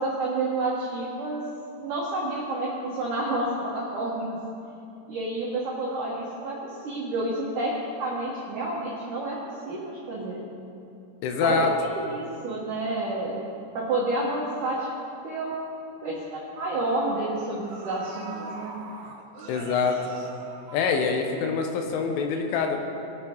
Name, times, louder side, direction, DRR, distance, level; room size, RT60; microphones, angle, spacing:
voice 1, 0.0-1.4 1.8-4.4 5.1-10.4 11.4-13.5 13.7-14.9 15.2-15.7 16.0-18.8, right 2 dB, 60° right, -6 dB, 2.3 m, -29 dB
voice 2, 11.2-11.7 19.5-20.2 20.7-22.8, left 5 dB, 90° left, 4 dB, 3.5 m, -25 dB
sound 1, 15.5-15.6 16.0-16.2 17.2-17.3 17.7-21.6 21.9-22.0, right 3 dB, 80° right, 1.6 m, -42 dB
21.0 x 7.1 x 3.8 m, 2.6 s
omnidirectional pair, 5.5 m